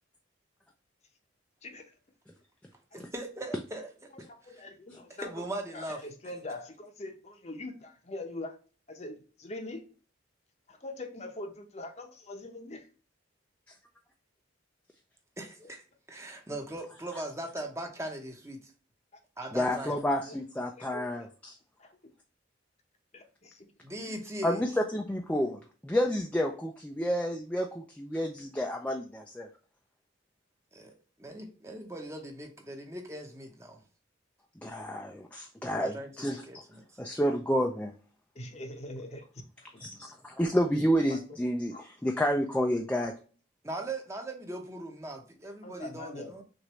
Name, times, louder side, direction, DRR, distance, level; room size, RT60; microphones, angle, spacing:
voice 1, 2.9-4.1 4.4-4.6 5.1-6.0 15.4-18.7 19.4-19.9 23.8-24.6 30.7-30.9 31.2-33.8 35.6-36.8 41.4-41.5 43.6-46.4, right 1 dB, 15° right, 3 dB, 0.9 m, -40 dB
voice 2, 4.2-5.3 5.7-8.6 8.9-9.8 10.7-12.9 19.4-19.5 20.2-20.4 20.7-21.0 21.8-22.0 23.1-23.7 24.1-24.2 38.3-39.3 39.6-40.1 41.1-41.2 41.7-41.8 45.6-46.4, left 2 dB, 35° left, 5 dB, 0.8 m, -43 dB
voice 3, 19.5-21.5 24.4-29.5 34.6-36.4 37.0-37.9 39.8-43.1, equal, 5° left, 2 dB, 0.4 m, -30 dB
6.3 x 2.6 x 3.0 m, 0.39 s
head